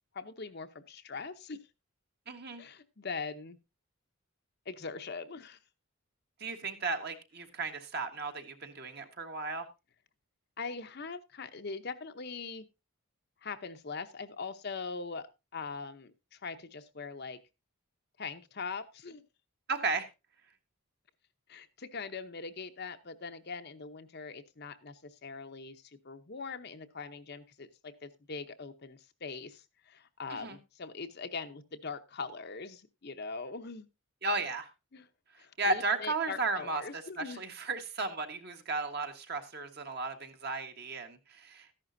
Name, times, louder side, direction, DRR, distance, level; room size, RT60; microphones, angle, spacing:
voice 1, 0.1-1.6 2.6-3.6 4.7-5.6 10.6-12.7 13.4-15.3 15.5-17.4 18.2-19.2 21.5-33.9 34.9-35.1 35.4-37.4, left 4 dB, 45° left, 9 dB, 0.8 m, -42 dB
voice 2, 2.3-2.6 6.4-9.7 19.7-20.1 30.3-30.6 34.2-34.7 35.6-41.7, right 3 dB, 45° right, 6 dB, 1.4 m, -35 dB
14.0 x 11.0 x 2.6 m, 0.25 s
head